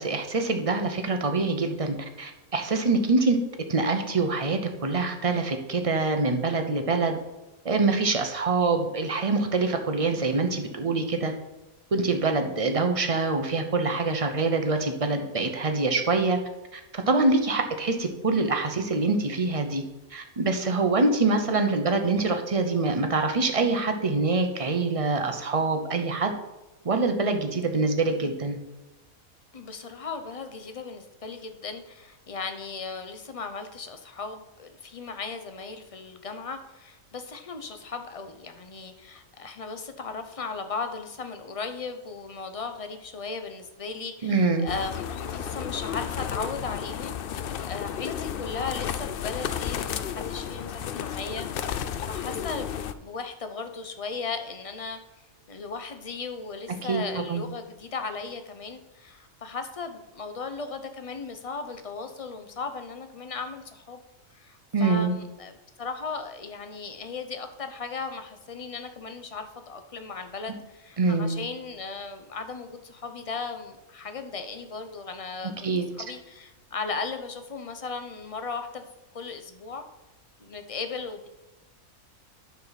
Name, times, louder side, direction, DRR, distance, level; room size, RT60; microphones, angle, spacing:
voice 1, 0.0-3.4 3.7-7.2 7.6-11.3 11.9-16.4 16.7-19.8 20.1-26.3 26.8-28.6 44.2-44.7 56.9-57.5 64.7-65.1 71.0-71.4 75.6-75.9, right 3 dB, 30° right, 5 dB, 0.7 m, -25 dB
voice 2, 29.5-51.5 52.1-52.8 53.0-55.0 55.5-64.0 64.3-65.5 65.8-78.9 79.1-79.8 80.4-81.3, left 4 dB, 35° left, 7 dB, 0.5 m, -36 dB
sound 1, 44.7-52.9, left 8 dB, 85° left, 0.5 m, -33 dB
9.8 x 6.8 x 4.1 m, 1.1 s
omnidirectional pair, 1.5 m